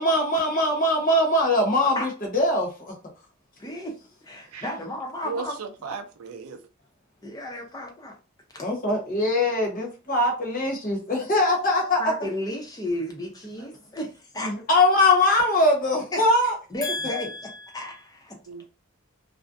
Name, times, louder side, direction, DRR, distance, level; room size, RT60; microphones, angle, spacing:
voice 1, 0.0-2.9 8.6-12.0 14.4-16.5 16.8-17.4, left 1 dB, 40° left, 0.9 m, -22 dB
voice 2, 3.6-3.9 4.2-5.6 7.2-8.2 8.5-8.7 12.0-14.6 16.1-16.2 16.7-18.4, left 1 dB, 15° left, 0.6 m, -33 dB
voice 3, 5.2-6.6 18.5-18.7, right 5 dB, 90° right, 0.4 m, -35 dB
2.5 x 2.1 x 2.5 m
head